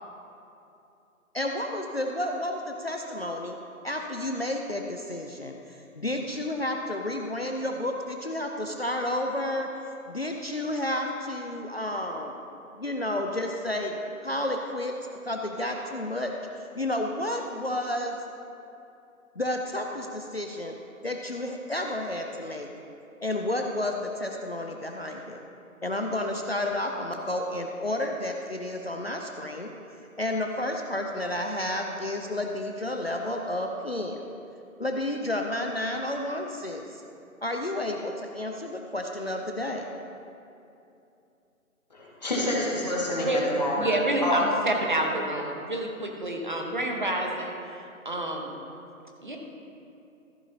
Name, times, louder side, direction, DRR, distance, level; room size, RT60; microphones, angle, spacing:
voice 1, 1.3-3.6 3.8-9.7 10.1-12.3 12.7-13.9 14.2-14.9 15.2-18.2 19.4-20.8 21.0-22.7 23.2-25.4 25.8-29.7 30.2-34.3 34.8-37.0 37.4-39.9, left 1 dB, 45° left, 2 dB, 0.6 m, -31 dB
voice 2, 41.9-43.9 44.2-44.4, left 1 dB, 30° left, -6 dB, 1.9 m, -28 dB
voice 3, 43.7-48.6 49.2-49.4, right 1 dB, 35° right, 1 dB, 1.1 m, -29 dB
14.5 x 10.5 x 2.8 m, 2.8 s
hypercardioid pair, 175°, 43 cm